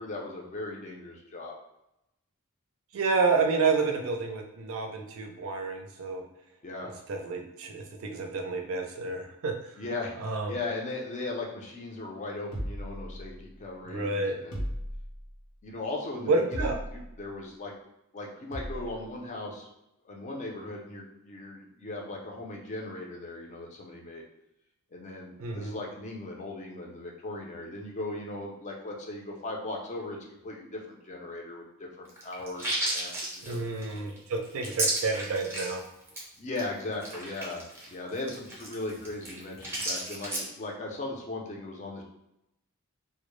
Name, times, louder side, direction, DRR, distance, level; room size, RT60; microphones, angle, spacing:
voice 1, 0.0-1.6 6.6-6.9 9.8-14.7 15.6-17.7 18.1-19.7 20.0-24.2 24.9-30.2 30.4-33.9 36.4-42.0, left 2 dB, 35° left, -1 dB, 0.5 m, -38 dB
voice 2, 2.9-6.2 7.1-9.5 10.2-10.5 13.9-14.4 16.3-16.8 25.4-25.7 33.4-35.8, right 4 dB, 65° right, 3 dB, 0.4 m, -29 dB
sound 1, 12.5-13.6 14.5-15.4 16.5-17.2 18.5-19.0, equal, 70° left, 0.8 m, -36 dB
sound 2, 32.1-35.8 36.1-36.2 36.6-36.7 36.9-40.5, right 1 dB, 10° right, 0.6 m, -33 dB
2.1 x 2.0 x 3.0 m, 0.87 s
head